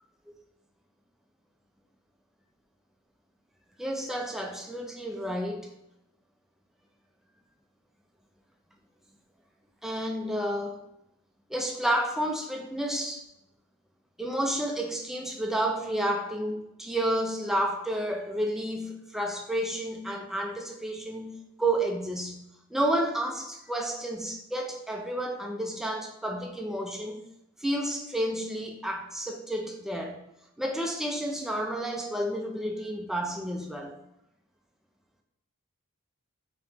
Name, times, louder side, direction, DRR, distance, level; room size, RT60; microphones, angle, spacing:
voice 1, 3.8-5.7 9.8-10.8 11.5-13.2 14.2-22.4 22.7-27.2 27.6-30.2 30.6-34.0, right 1 dB, ahead, 2 dB, 0.3 m, -31 dB
3.4 x 2.9 x 2.8 m, 0.85 s
head